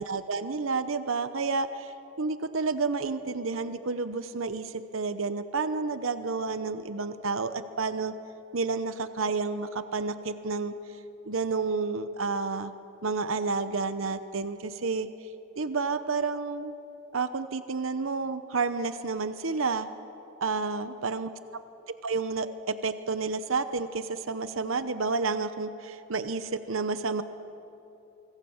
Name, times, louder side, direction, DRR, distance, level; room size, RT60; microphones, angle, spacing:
voice 1, 0.0-8.1 8.5-10.7 11.3-12.7 13.0-15.1 15.6-16.7 17.1-19.9 20.4-21.3 22.0-27.2, right 4 dB, 75° right, 11 dB, 0.9 m, -30 dB
24.5 x 24.5 x 7.2 m, 3.0 s
head